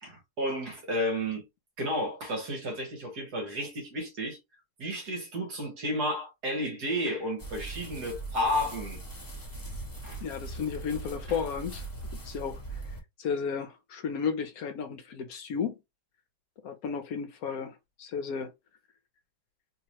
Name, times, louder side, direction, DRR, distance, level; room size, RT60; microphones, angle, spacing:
voice 1, 0.0-1.5 1.8-4.4 4.8-9.0 10.0-10.2, equal, 70° right, 1.9 m, -32 dB
sound 1, 7.4-13.0, right 2 dB, 15° left, 1.2 m, -40 dB
voice 2, 10.2-11.9 12.2-12.8 13.2-15.8 16.6-18.5, left 6 dB, 70° left, 1.0 m, -33 dB
3.4 x 2.8 x 2.9 m
omnidirectional pair, 1.8 m